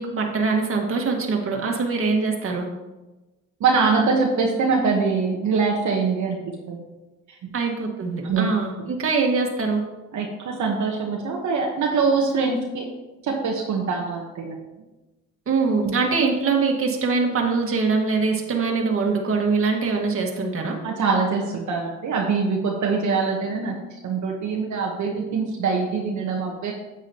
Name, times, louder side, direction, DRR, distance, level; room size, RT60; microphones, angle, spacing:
voice 1, 0.0-2.7 7.5-9.8 15.5-20.8, right 4 dB, 45° right, 1 dB, 1.7 m, -23 dB
voice 2, 3.6-6.4 6.7-6.8 8.2-8.5 10.1-12.9 13.2-14.6 15.8-15.9 20.8-23.8 24.0-26.7, right 4 dB, 70° right, -1 dB, 1.2 m, -23 dB
9.0 x 8.1 x 3.0 m, 1.1 s
cardioid pair, 90°, 30 cm